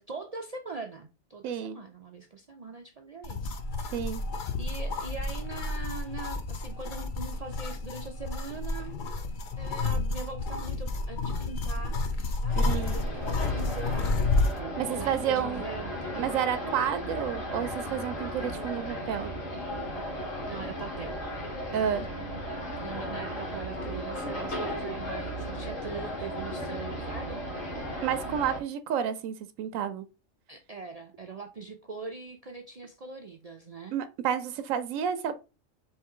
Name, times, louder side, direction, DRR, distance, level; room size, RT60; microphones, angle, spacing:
voice 1, 0.0-3.6 4.6-12.0 12.4-14.0 14.7-16.3 20.5-21.2 21.8-22.2 22.8-27.4 30.5-34.0, right 4 dB, 60° right, 0.4 m, -42 dB
voice 2, 1.4-1.8 3.9-4.2 12.5-12.9 14.8-15.6 16.2-19.3 21.7-22.1 28.0-30.1 33.9-35.4, right 8 dB, 90° right, 1.0 m, -30 dB
sound 1, 3.2-14.6, left 3 dB, 50° left, 0.6 m, -30 dB
sound 2, 12.5-28.6, equal, 75° left, 2.3 m, -36 dB
4.3 x 3.1 x 3.7 m
omnidirectional pair, 1.3 m